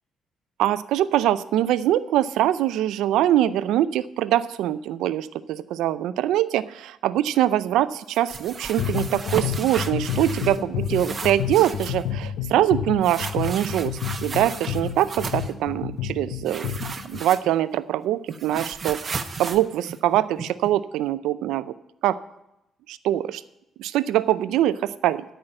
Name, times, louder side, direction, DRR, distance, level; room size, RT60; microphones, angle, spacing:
voice 1, 0.6-16.8 17.1-21.7 22.0-22.2 22.9-23.4 23.8-25.2, right 12 dB, 90° right, 14 dB, 0.5 m, -23 dB
sound 1, 8.1-10.6 10.8-12.0 13.0-15.5 16.4-17.8 18.0-20.7, right 4 dB, 40° right, 1.0 m, -35 dB
sound 2, 8.8-17.2, left 9 dB, 85° left, 0.5 m, -30 dB
13.0 x 5.7 x 8.9 m, 0.87 s
cardioid pair, 90°, 0 cm